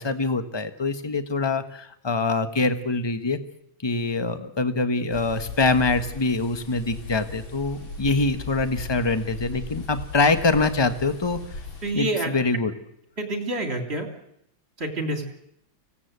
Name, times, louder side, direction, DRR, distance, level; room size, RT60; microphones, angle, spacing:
voice 1, 0.0-3.4 3.8-11.4 11.9-12.7, left 3 dB, 15° left, 10 dB, 1.1 m, -24 dB
sound 1, 5.1-11.9, left 3 dB, 75° left, 4.0 m, -37 dB
voice 2, 11.8-12.3 13.2-14.1 14.8-15.3, right 1 dB, 30° right, 5 dB, 3.6 m, -27 dB
24.5 x 17.5 x 8.1 m, 0.76 s
omnidirectional pair, 2.2 m